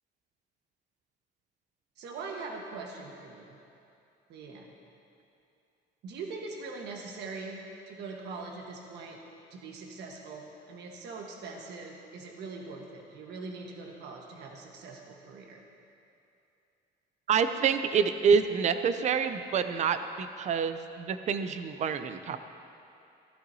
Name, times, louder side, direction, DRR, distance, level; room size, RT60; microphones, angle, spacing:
voice 1, 2.0-3.6 4.3-4.8 6.0-9.2 9.5-15.6, right 3 dB, 70° right, 1 dB, 1.3 m, -42 dB
voice 2, 17.3-22.4, right 6 dB, 40° right, 10 dB, 0.5 m, -27 dB
15.0 x 13.5 x 2.7 m, 2.7 s
cardioid pair, 145°, 18 cm